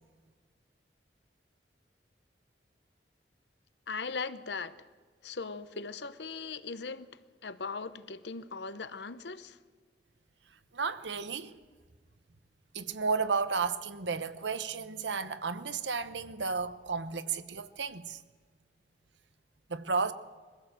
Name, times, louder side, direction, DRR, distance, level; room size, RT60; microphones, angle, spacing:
voice 1, 3.9-4.8 5.2-7.1 7.4-9.6, left 4 dB, 75° left, 0.9 m, -39 dB
voice 2, 10.7-11.5 12.7-18.2 19.7-20.1, right 5 dB, 90° right, 1.0 m, -33 dB
22.5 x 15.5 x 7.8 m
head